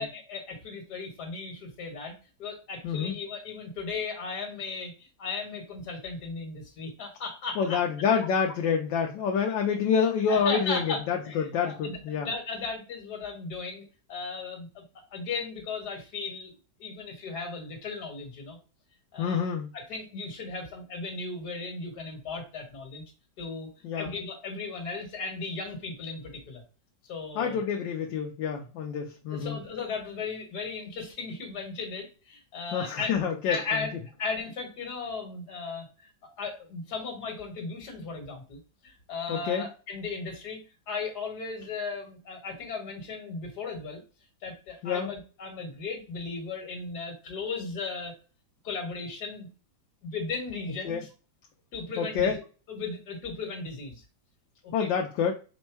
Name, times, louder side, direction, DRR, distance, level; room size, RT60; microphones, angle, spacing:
voice 1, 0.0-7.8 10.3-14.8 15.1-16.5 16.8-18.6 19.1-19.5 19.7-23.0 23.4-23.7 24.0-26.6 27.1-27.6 29.3-33.1 33.5-36.1 36.4-40.6 40.9-44.0 44.4-48.1 48.6-49.5 50.0-51.1 51.7-52.4 52.7-54.0 54.6-54.9, left 4 dB, 60° left, 2 dB, 1.8 m, -36 dB
voice 2, 2.8-3.2 7.6-12.3 19.2-19.7 23.8-24.1 27.4-29.6 32.7-33.9 39.3-39.7 44.8-45.1 50.8-51.0 52.0-52.4 54.7-55.3, left 6 dB, 75° left, 1 dB, 1.3 m, -27 dB
5.3 x 2.2 x 4.5 m, 0.35 s
omnidirectional pair, 2.1 m